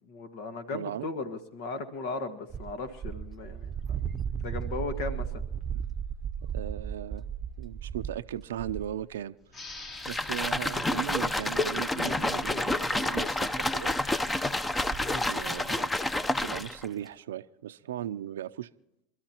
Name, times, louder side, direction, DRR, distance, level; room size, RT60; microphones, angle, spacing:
voice 1, 0.1-3.7 4.4-5.4 11.9-12.1 12.5-12.7 15.0-15.2, left 3 dB, 75° left, 9 dB, 1.6 m, -37 dB
voice 2, 0.7-1.1 5.7-5.8 6.5-7.2 7.6-13.9 15.3-16.0 16.4-18.7, right 11 dB, 90° right, 12 dB, 0.5 m, -38 dB
sound 1, 2.5-9.0 9.7-10.2 10.4-10.5 11.3-11.4 12.4-12.5 12.7-12.8 13.5-13.7 13.9-14.0 14.2-14.3 14.7-15.1, right 8 dB, 25° right, 0.7 m, -35 dB
sound 2, 9.5-12.8, left 3 dB, 45° left, 3.5 m, -48 dB
sound 3, 10.0-16.9, left 1 dB, 15° left, 0.7 m, -29 dB
28.0 x 13.0 x 2.9 m, 0.78 s
hypercardioid pair, 100°, 0 cm